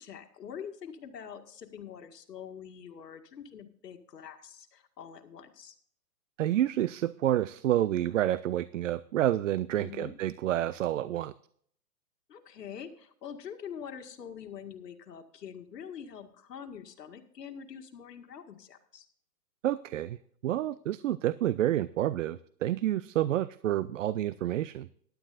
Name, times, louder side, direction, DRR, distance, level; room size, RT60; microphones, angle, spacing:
voice 1, 0.0-5.7 9.8-10.1 12.3-19.1, left 8 dB, 75° left, 6 dB, 2.0 m, -45 dB
voice 2, 6.4-11.3 19.6-20.2 20.4-24.9, right 12 dB, 55° right, 17 dB, 0.5 m, -29 dB
15.5 x 11.5 x 2.6 m, 0.62 s
hypercardioid pair, 140°, 49 cm